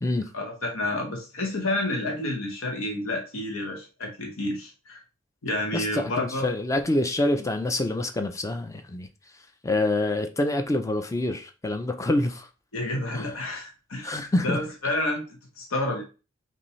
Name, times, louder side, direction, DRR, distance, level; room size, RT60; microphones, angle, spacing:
voice 1, 0.3-5.0 5.4-6.5 12.7-16.0, left 1 dB, 90° left, 1.0 m, -30 dB
voice 2, 5.7-9.1 9.6-12.5 13.1-13.3 14.0-14.6, left 1 dB, 15° left, 0.4 m, -26 dB
5.4 x 2.7 x 3.1 m
head